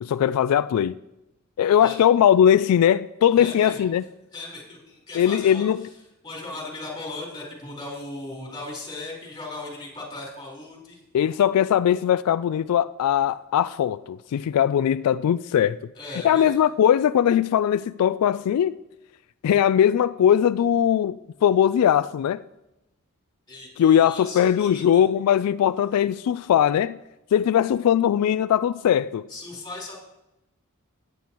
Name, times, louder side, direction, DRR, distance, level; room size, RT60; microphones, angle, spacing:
voice 1, 0.0-0.9 1.6-4.0 5.2-5.8 11.1-15.8 16.2-18.8 19.4-22.4 23.8-27.0 27.3-29.3, left 9 dB, 85° left, 0.3 m, -20 dB
voice 2, 3.4-3.9 4.3-6.0 6.2-11.0 15.9-16.6 23.5-25.0 29.3-30.0, left 2 dB, 20° left, 4.1 m, -37 dB
16.5 x 9.3 x 3.0 m
head